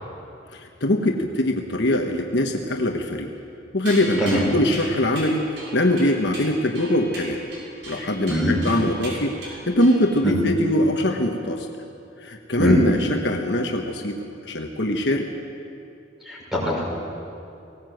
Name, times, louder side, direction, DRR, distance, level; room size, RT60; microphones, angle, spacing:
voice 1, 0.5-3.3 3.7-7.4 7.9-11.7 12.2-15.3, left 1 dB, 60° left, 2 dB, 1.3 m, -22 dB
sound 1, 3.8-10.4, right 1 dB, 65° right, 6.8 m, -38 dB
voice 2, 16.3-16.8, equal, ahead, -5 dB, 5.6 m, -22 dB
19.0 x 18.0 x 7.9 m, 2.6 s
head